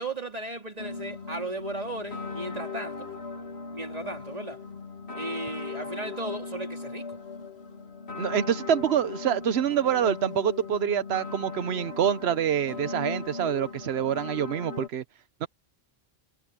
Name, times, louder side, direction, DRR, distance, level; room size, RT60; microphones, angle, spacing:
voice 1, 0.0-3.1 3.7-4.6 5.1-7.2, right 2 dB, 40° right, 3.2 m, -35 dB
sound 1, 0.8-14.9, left 4 dB, 85° left, 1.9 m, -38 dB
voice 2, 8.2-15.0 15.4-15.5, right 9 dB, 85° right, 1.0 m, -26 dB
omnidirectional pair, 1.0 m